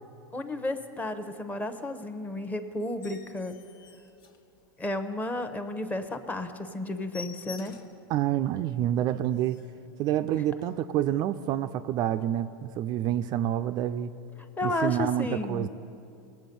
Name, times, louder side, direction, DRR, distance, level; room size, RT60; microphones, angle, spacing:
voice 1, 0.3-3.6 4.8-7.8 10.3-10.4 14.6-15.7, left 2 dB, 15° left, 8 dB, 0.9 m, -32 dB
sound 1, 2.9-5.0 5.4-5.6 5.9-6.0 6.3-6.5 6.7-8.1 8.5-8.6 9.0-9.1 9.3-9.8 10.6-10.7, left 5 dB, 80° left, 1.3 m, -48 dB
voice 2, 8.1-9.6 10.0-14.1 14.6-15.7, right 11 dB, 40° right, 10 dB, 0.4 m, -28 dB
19.5 x 7.6 x 5.4 m, 2.6 s
supercardioid pair, 120°, 11 cm